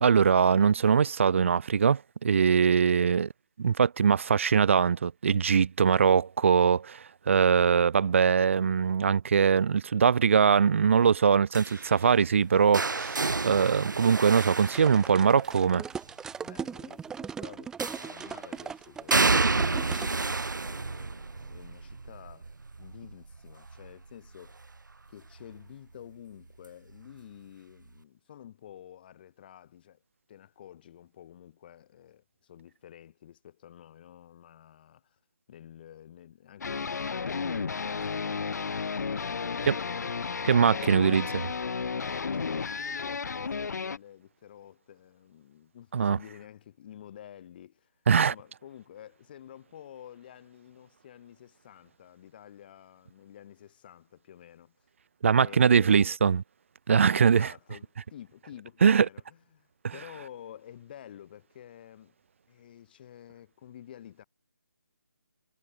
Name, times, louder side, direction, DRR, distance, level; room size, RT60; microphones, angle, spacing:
voice 1, 0.0-3.3 3.6-15.8 39.7-39.8 40.5-41.3 45.9-46.2 48.1-48.3 55.2-56.4 56.9-57.5 58.8-59.1, right 6 dB, 40° right, 0.4 m, -22 dB
sound 1, 11.5-15.6 17.8-18.4 19.1-24.9 25.3-25.7 26.9-27.0, right 3 dB, 85° right, 0.9 m, -30 dB
sound 2, 14.6-20.1, right 6 dB, 5° right, 1.9 m, -39 dB
voice 2, 16.4-24.6 25.1-30.0 30.3-35.2 35.5-38.6 39.2-40.3 40.6-41.1 42.0-47.9 48.3-54.7 55.3-55.9 56.9-62.1 62.5-64.2, left 10 dB, 30° left, 3.2 m, -50 dB
sound 3, 36.6-44.0, left 5 dB, 65° left, 0.6 m, -33 dB
figure-of-eight pair, 160°, 10 cm